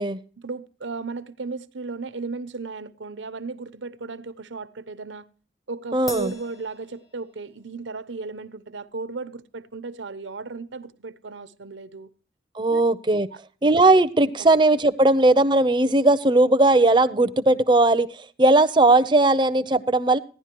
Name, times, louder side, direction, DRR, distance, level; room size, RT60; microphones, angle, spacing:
voice 1, 0.4-5.3 5.7-12.1 12.7-12.8 13.3-13.4 14.4-14.5, right 3 dB, 85° right, 0.9 m, -35 dB
voice 2, 5.9-6.3 12.6-13.3 13.6-20.2, right 2 dB, 25° right, 0.6 m, -18 dB
Crash cymbal, 6.1-7.7, left 2 dB, 20° left, 0.8 m, -41 dB
16.0 x 11.0 x 3.0 m
head